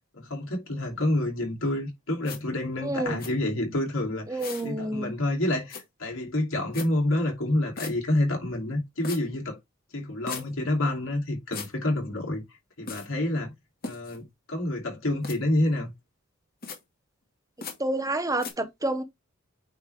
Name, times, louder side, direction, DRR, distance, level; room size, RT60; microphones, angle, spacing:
voice 1, 0.2-9.6 9.9-12.4 12.8-13.5 13.8-15.9, left 1 dB, 75° left, 2.7 m, -28 dB
sound 1, 2.2-2.4 3.2-3.3 4.4-4.7 5.7-5.8 6.7-6.9 7.8-7.9 9.0-9.2 10.3-10.4 11.5-11.7 12.9-13.1 13.8-14.2 15.2-15.4 16.6-16.8 17.6-17.8 18.4-18.5, left 5 dB, 45° left, 1.9 m, -37 dB
voice 2, 2.8-3.2 4.3-5.1 17.8-19.0, right 1 dB, 15° right, 0.9 m, -29 dB
9.0 x 3.3 x 3.3 m
head